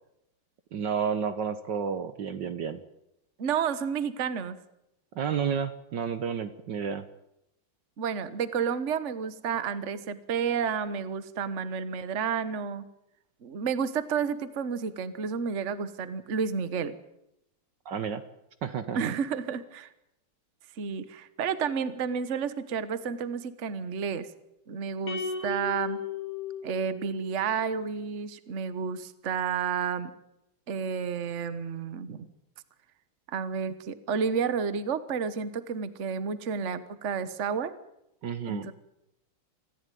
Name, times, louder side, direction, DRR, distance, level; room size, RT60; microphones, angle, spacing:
voice 1, 0.7-2.8 5.1-7.0 17.8-18.2 18.6-19.1 38.2-38.7, right 7 dB, 60° right, 11 dB, 1.5 m, -31 dB
voice 2, 3.4-4.6 8.0-12.9 13.4-16.9 18.9-19.9 20.8-24.3 24.7-26.0 26.6-30.1 30.7-32.3 33.3-37.7 38.5-38.7, right 6 dB, 40° right, 13 dB, 1.3 m, -31 dB
sound 1, 25.1-27.5, left 4 dB, 85° left, 3.5 m, -35 dB
26.5 x 14.5 x 9.2 m, 0.83 s
omnidirectional pair, 2.4 m